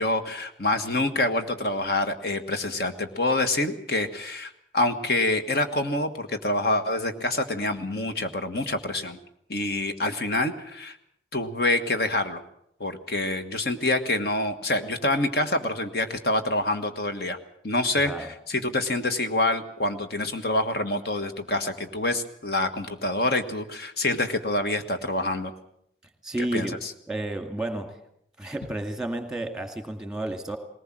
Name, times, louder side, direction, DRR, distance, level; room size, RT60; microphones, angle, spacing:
voice 1, 0.0-9.2 9.5-11.0 11.3-12.4 12.8-17.4 17.6-18.1 18.5-25.5 26.5-26.9, left 2 dB, 60° left, 7 dB, 1.5 m, -26 dB
voice 2, 18.0-18.3 26.2-26.8 27.1-28.0 28.4-30.6, right 1 dB, 5° right, 6 dB, 2.2 m, -31 dB
20.0 x 19.0 x 7.6 m, 0.73 s
head